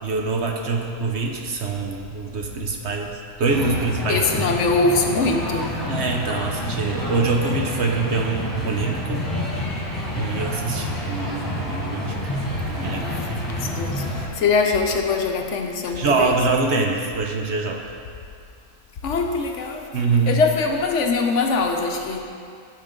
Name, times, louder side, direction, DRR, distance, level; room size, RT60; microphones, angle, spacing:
voice 1, 0.0-4.5 5.9-9.2 10.2-12.1 12.7-13.0 16.0-17.8 19.9-20.3, right 3 dB, 55° right, 1 dB, 1.0 m, -24 dB
sound 1, 3.5-14.3, left 1 dB, 15° left, 1.5 m, -28 dB
voice 2, 4.1-5.8 12.8-16.4 19.0-19.9 20.3-22.2, left 4 dB, 65° left, 3 dB, 1.0 m, -23 dB
14.5 x 5.1 x 3.7 m, 2.3 s
omnidirectional pair, 1.4 m